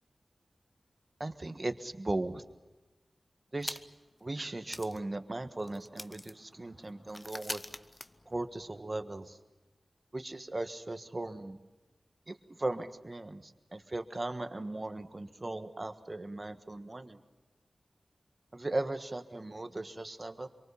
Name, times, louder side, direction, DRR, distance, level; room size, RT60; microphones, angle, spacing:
voice 1, 1.2-2.4 3.5-3.8 4.2-7.6 8.3-9.4 10.1-11.6 12.3-17.2 18.5-20.5, right 2 dB, 30° right, 9 dB, 1.4 m, -37 dB
sound 1, 3.6-4.1 4.4-4.5 4.7-8.8, left 1 dB, 20° left, 0.8 m, -45 dB
26.0 x 24.0 x 7.1 m, 1.1 s
wide cardioid pair, 100°, 0 cm